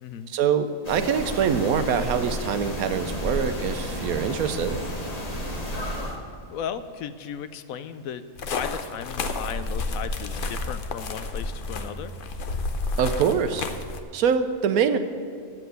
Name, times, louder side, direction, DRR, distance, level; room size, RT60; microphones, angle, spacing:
voice 1, 0.3-4.8 13.0-13.7 14.1-15.0, right 7 dB, 90° right, 9 dB, 1.2 m, -24 dB
sound 1, 0.8-6.2, equal, 30° left, 1.3 m, -32 dB
voice 2, 6.5-12.1, left 8 dB, 80° left, 12 dB, 1.0 m, -35 dB
sound 2, 8.4-14.0, left 3 dB, 50° left, 0.6 m, -31 dB
7.9 x 7.5 x 8.1 m, 2.3 s
omnidirectional pair, 1.5 m